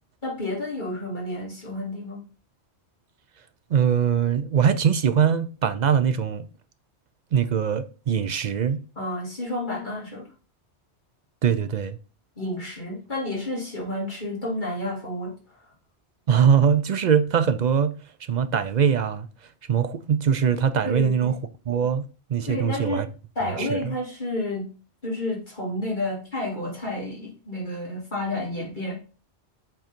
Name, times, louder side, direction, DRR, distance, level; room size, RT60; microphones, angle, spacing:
voice 1, 0.2-2.2 9.0-10.3 12.4-15.3 20.8-21.3 22.5-23.1 23.4-24.7 25.0-29.0, left 1 dB, 45° left, 2.7 m, -30 dB
voice 2, 3.7-6.5 7.3-8.8 11.4-12.0 16.3-18.0 18.3-19.3 19.7-21.4 21.7-22.0 22.3-23.1 23.6-23.9, right 7 dB, 55° right, 0.5 m, -22 dB
7.7 x 3.8 x 4.4 m
omnidirectional pair, 1.2 m